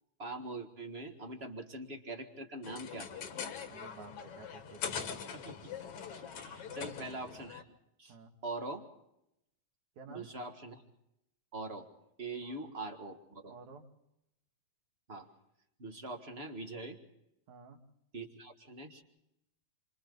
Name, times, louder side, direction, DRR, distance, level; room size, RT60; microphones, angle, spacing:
voice 1, 0.2-3.1 5.3-5.7 6.2-7.6 8.0-8.2 8.4-8.9 10.1-10.7 11.5-11.9 12.2-13.5 15.1-15.3 15.8-17.0 18.1-19.0, right 2 dB, 40° right, 4 dB, 0.8 m, -43 dB
sound 1, 2.6-7.6, left 7 dB, 55° left, 1.9 m, -42 dB
voice 2, 3.7-5.1 6.4-7.1 8.1-8.3 10.0-10.3 12.4-12.6 13.5-13.9 17.5-17.8, right 4 dB, 60° right, 3 dB, 3.3 m, -52 dB
28.5 x 26.0 x 4.0 m, 0.84 s
omnidirectional pair, 4.2 m